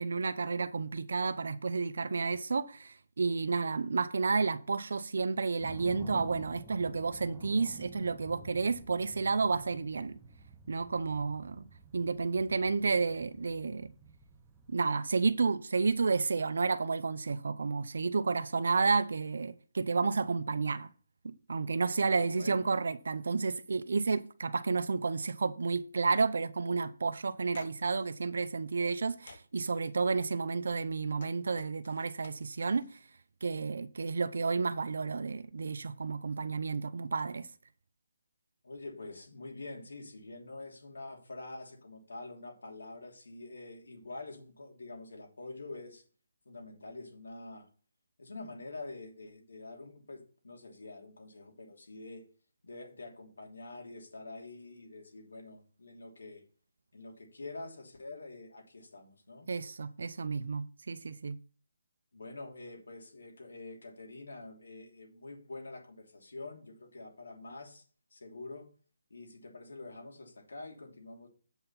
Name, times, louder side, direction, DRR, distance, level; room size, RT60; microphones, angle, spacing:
voice 1, 0.0-10.2 10.7-11.6 11.9-13.9 14.7-20.9 21.2-32.9 33.4-37.5 59.5-61.4, right 4 dB, 70° right, 0.6 m, -31 dB
sound 1, 5.6-14.9, right 4 dB, 10° right, 0.7 m, -51 dB
voice 2, 21.9-22.7 38.6-46.0 46.4-47.7 48.2-52.3 52.6-56.4 56.9-59.5 62.1-67.8 68.1-68.7 69.1-71.3, left 2 dB, 85° left, 3.0 m, -46 dB
sound 2, 27.5-28.1 28.7-29.0 29.3-29.8 30.7-33.0, left 4 dB, 55° left, 1.1 m, -54 dB
8.1 x 5.6 x 5.8 m
hypercardioid pair, 165°, 0 cm